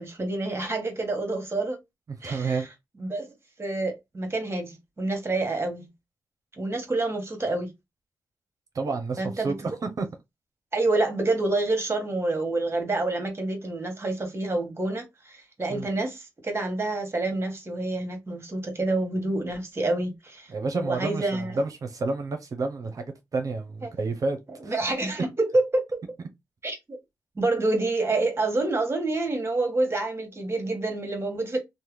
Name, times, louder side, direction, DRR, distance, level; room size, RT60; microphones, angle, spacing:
voice 1, 0.0-1.8 2.2-2.7 3.0-3.3 3.6-5.9 6.6-7.7 9.2-9.8 10.7-21.6 23.8-23.9 24.6-26.0 26.6-27.0 27.4-31.6, right 2 dB, 40° right, 1.3 m, -28 dB
voice 2, 2.2-2.7 8.7-9.5 9.8-10.1 15.7-15.9 20.5-24.4 24.6-24.7, right 3 dB, 60° right, 0.7 m, -30 dB
2.7 x 2.1 x 3.2 m
supercardioid pair, 45°, 7 cm